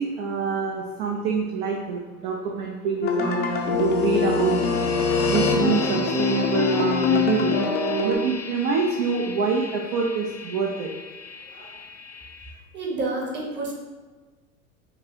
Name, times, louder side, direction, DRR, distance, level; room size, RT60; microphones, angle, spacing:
voice 1, 0.0-4.6 5.3-7.6 8.0-10.9, right 5 dB, 45° right, 0 dB, 0.6 m, -26 dB
sound 1, 3.0-8.1, left 5 dB, 25° left, 0.5 m, -24 dB
sound 2, 3.7-12.5, left 2 dB, 80° left, 1.0 m, -34 dB
voice 2, 11.5-11.8 12.7-13.7, right 2 dB, 25° right, -1 dB, 1.1 m, -30 dB
5.3 x 2.6 x 2.9 m, 1.3 s
hypercardioid pair, 95°, 44 cm